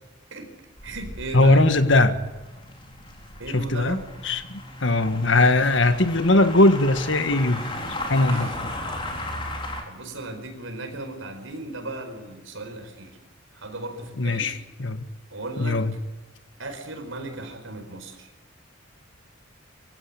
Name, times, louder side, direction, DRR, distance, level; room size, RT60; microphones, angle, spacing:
sound 1, 0.8-9.8, left 1 dB, 25° left, 3.9 m, -36 dB
voice 1, 0.8-1.6 3.4-4.1 8.3-8.6 9.9-13.2 13.5-14.5 15.3-15.8 16.6-18.3, right 2 dB, 80° right, 5 dB, 4.9 m, -36 dB
voice 2, 1.3-2.2 3.5-7.7 8.1-8.5 14.2-15.0 15.6-15.9, left 2 dB, 65° left, 10 dB, 1.6 m, -20 dB
24.5 x 16.0 x 8.8 m, 1.2 s
head